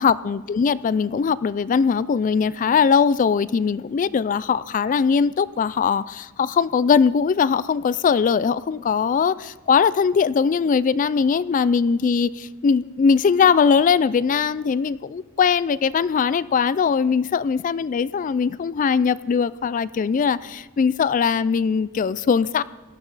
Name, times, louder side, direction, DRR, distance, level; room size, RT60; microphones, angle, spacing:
voice 1, 0.0-22.6, left 6 dB, 40° left, 18 dB, 0.3 m, -20 dB
17.5 x 12.0 x 4.0 m, 1.2 s
head